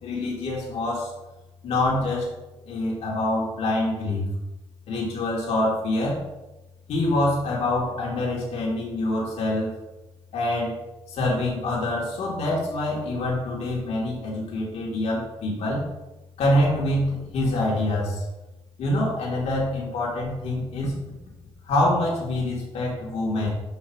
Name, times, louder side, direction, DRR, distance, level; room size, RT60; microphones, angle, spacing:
voice 1, 0.0-1.1 1.6-2.3 2.6-4.3 4.9-6.2 6.9-9.7 10.3-10.7 11.1-15.8 16.4-18.2 18.8-20.9 21.7-23.5, left 1 dB, 80° left, -4 dB, 3.3 m, -25 dB
13.0 x 5.8 x 3.2 m, 1.0 s
wide cardioid pair, 160°, 11 cm